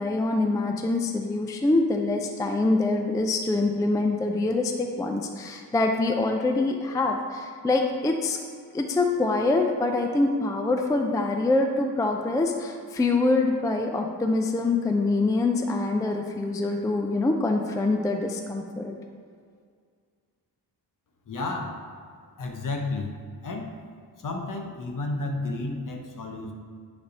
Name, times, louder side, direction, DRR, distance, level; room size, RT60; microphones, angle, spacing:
voice 1, 0.0-8.4 8.7-19.0, left 2 dB, 10° left, 3 dB, 0.3 m, -25 dB
voice 2, 21.3-21.8 22.4-23.1 23.4-23.7 24.2-26.5, left 2 dB, 50° left, 3 dB, 0.9 m, -32 dB
9.6 x 3.5 x 5.3 m, 2.1 s
wide cardioid pair, 150°, 40 cm